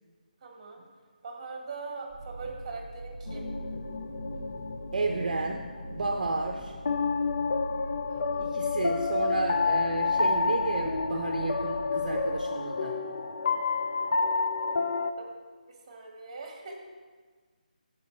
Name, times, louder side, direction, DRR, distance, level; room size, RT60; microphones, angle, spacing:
voice 1, 0.4-0.8 1.2-3.5 8.1-8.6 15.2-15.3 15.9-16.8, right 4 dB, 30° right, 1 dB, 1.5 m, -41 dB
sound 1, 2.1-12.4, right 2 dB, 5° left, 1.5 m, -42 dB
sound 2, 3.3-15.1, left 4 dB, 50° left, 0.5 m, -30 dB
voice 2, 4.9-6.8 8.4-13.0, right 3 dB, 55° right, 3 dB, 0.6 m, -32 dB
12.5 x 4.5 x 4.3 m, 1.5 s
figure-of-eight pair, 150°, 5 cm